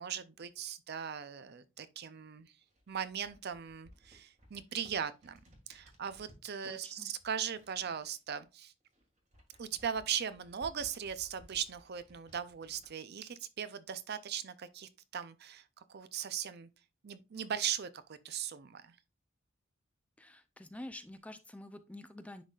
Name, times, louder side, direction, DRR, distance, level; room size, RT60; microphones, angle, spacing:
voice 1, 0.0-2.5 2.9-5.4 5.7-8.7 9.6-16.7 17.0-19.0, right 8 dB, 55° right, 0.5 m, -39 dB
sound 1, 2.6-6.5 7.2-8.5 8.8-12.9, equal, 40° right, 1.9 m, -60 dB
voice 2, 6.6-7.1 20.2-22.4, left 1 dB, 5° left, 0.4 m, -48 dB
10.0 x 4.0 x 2.4 m
head